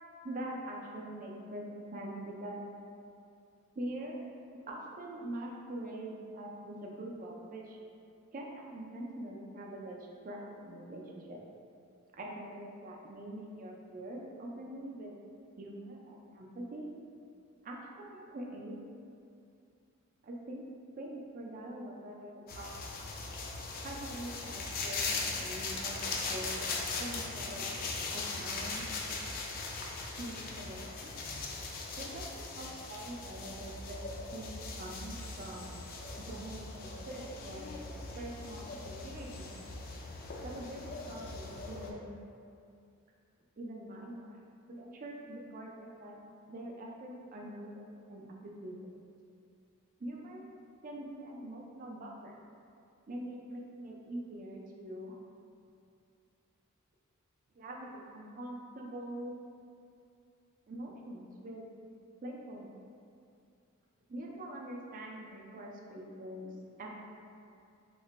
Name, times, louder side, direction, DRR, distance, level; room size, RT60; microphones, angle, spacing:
voice 1, 0.2-1.6 1.9-2.6 3.7-4.2 4.7-7.8 8.3-11.4 12.2-15.1 15.6-16.9 17.6-18.8 20.2-20.6 21.0-22.7 23.8-27.7 28.1-28.8 30.2-31.1 32.0-34.0 34.3-35.7 36.2-37.7 38.1-39.6 40.4-42.1 43.6-44.4 44.7-46.2 46.5-48.9 50.0-50.5 50.8-52.4 53.1-55.2 57.5-59.4 60.7-61.7 62.2-62.8 64.1-66.9, right 1 dB, 40° right, -1 dB, 0.4 m, -44 dB
sound 1, 22.5-41.9, left 3 dB, 40° left, 0.3 m, -39 dB
3.0 x 2.1 x 3.8 m, 2.5 s
head